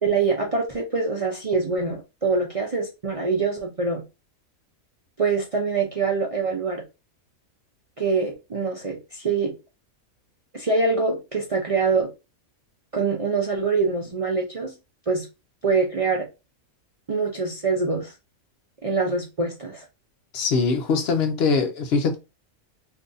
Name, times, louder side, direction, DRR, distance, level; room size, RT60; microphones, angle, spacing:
voice 1, 0.0-4.0 5.2-6.8 8.0-9.5 10.5-12.1 12.9-14.7 15.1-15.3 15.6-16.3 17.1-18.1 18.8-19.8, right 4 dB, 55° right, 0.3 m, -24 dB
voice 2, 20.3-22.2, left 4 dB, 60° left, 0.7 m, -22 dB
2.6 x 2.6 x 3.7 m
omnidirectional pair, 1.4 m